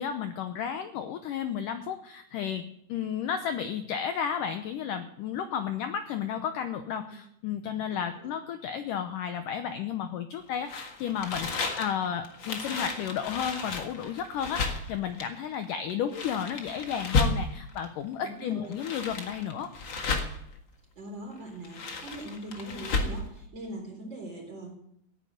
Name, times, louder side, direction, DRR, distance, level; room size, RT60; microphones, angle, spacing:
voice 1, 0.0-19.7, left 8 dB, 80° left, 8 dB, 1.9 m, -33 dB
sound 1, 10.7-17.9 18.5-20.5 21.5-23.3, left 3 dB, 50° left, 1.4 m, -32 dB
voice 2, 18.2-18.8 20.9-24.8, right 1 dB, 25° right, 1 dB, 4.3 m, -41 dB
16.0 x 9.4 x 9.3 m, 0.73 s
omnidirectional pair, 4.8 m